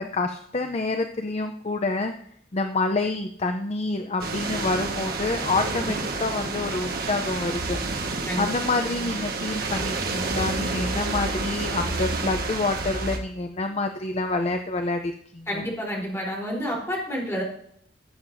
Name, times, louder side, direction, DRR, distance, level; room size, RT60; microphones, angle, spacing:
voice 1, 0.0-2.1 2.5-7.8 8.4-15.7, left 3 dB, 35° left, 6 dB, 0.6 m, -27 dB
sound 1, 4.2-13.2, right 3 dB, 60° right, 1.5 m, -29 dB
voice 2, 15.5-17.4, equal, 15° left, -3 dB, 3.8 m, -29 dB
16.5 x 8.0 x 2.7 m, 0.66 s
head